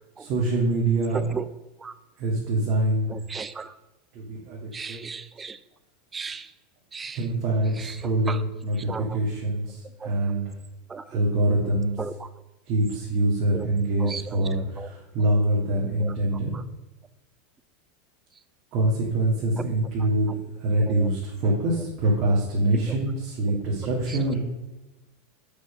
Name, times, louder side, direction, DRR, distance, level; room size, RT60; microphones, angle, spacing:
voice 1, 0.2-1.3 2.2-3.2 4.1-5.0 7.1-10.5 11.1-11.9 12.7-16.5 18.7-20.3 20.6-24.4, right 1 dB, 40° right, 1.8 m, -25 dB
voice 2, 1.1-1.5 1.8-1.9 3.1-3.7 4.7-5.6 6.1-6.5 6.9-7.2 7.8-8.4 8.9-9.2 10.0-10.1 10.9-11.2 12.0-12.3 13.5-13.7 14.0-14.4 14.8-14.9 16.0-16.1 16.5-16.6 19.6-19.7 20.8-21.1 22.7-22.9 23.5-23.6 24.1-24.3, right 5 dB, 15° right, 0.3 m, -36 dB
7.5 x 5.3 x 5.1 m
supercardioid pair, 160°, 0 cm